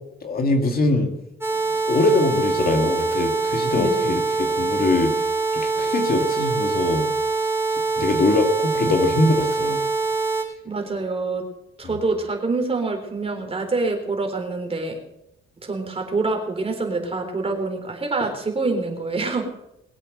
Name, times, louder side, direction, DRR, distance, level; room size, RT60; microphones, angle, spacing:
voice 1, 0.2-1.1 1.9-5.2 5.5-7.0 8.0-9.8 11.8-11.9, left 2 dB, 50° left, 4 dB, 2.4 m, -22 dB
sound 1, 1.4-10.4, right 3 dB, 10° right, 4.2 m, -24 dB
voice 2, 3.8-4.2 10.6-11.4 11.8-15.0 15.6-19.5, right 3 dB, 30° right, 4 dB, 3.8 m, -26 dB
21.5 x 8.2 x 6.7 m, 0.84 s
cardioid pair, 90°, 20 cm